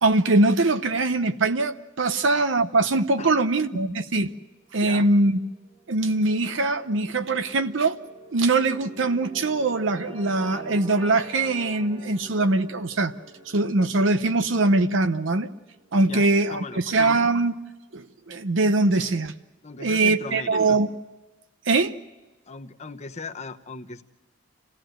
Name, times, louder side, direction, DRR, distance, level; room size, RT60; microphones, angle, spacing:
voice 1, 0.0-4.3 4.7-5.4 5.9-8.0 8.3-13.1 13.5-15.5 15.9-17.6 17.9-19.3 19.8-20.9 21.7-21.9, right 2 dB, 70° right, 11 dB, 0.8 m, -22 dB
voice 2, 3.2-3.8 4.8-5.1 16.0-17.0 19.6-20.8 22.5-24.0, left 3 dB, 35° left, 7 dB, 1.0 m, -38 dB
sound 1, 5.1-17.4, right 2 dB, 30° right, 1.4 m, -46 dB
27.0 x 17.0 x 7.9 m, 1.1 s
head